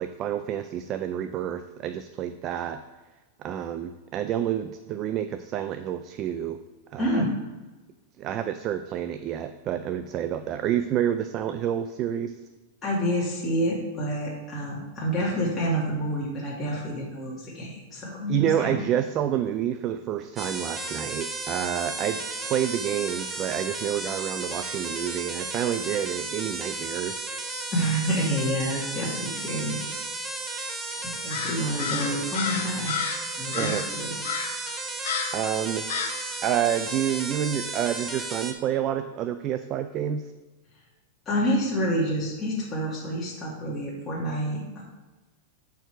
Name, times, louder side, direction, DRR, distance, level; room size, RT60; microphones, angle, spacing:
voice 1, 0.0-2.8 3.4-6.6 6.9-7.2 8.2-12.3 18.3-27.2 33.5-33.9 35.3-35.8 36.4-40.3, right 10 dB, 35° right, 9 dB, 0.4 m, -28 dB
voice 2, 7.0-7.3 12.8-18.8 27.7-30.1 31.0-33.1 33.4-34.2 41.3-44.8, equal, 15° left, -6 dB, 1.9 m, -28 dB
sound 1, 20.4-38.5, right 2 dB, 15° right, 0.7 m, -34 dB
Crow, 31.3-33.2 33.5-33.9 34.2-34.6 35.0-35.4 35.9-36.2, left 7 dB, 80° left, 0.8 m, -31 dB
7.9 x 4.6 x 4.5 m, 1.2 s
hypercardioid pair, 135°, 0 cm